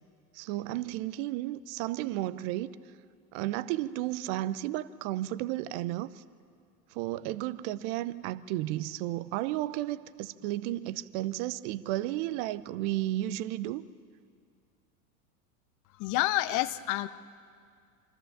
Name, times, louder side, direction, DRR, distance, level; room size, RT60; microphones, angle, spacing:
voice 1, 0.3-2.8 3.3-6.2 6.9-13.9, right 15 dB, 45° right, 16 dB, 0.8 m, -33 dB
voice 2, 16.0-17.1, left 16 dB, 40° left, 16 dB, 0.8 m, -28 dB
25.5 x 14.0 x 7.4 m, 2.3 s
hypercardioid pair, 95°, 48 cm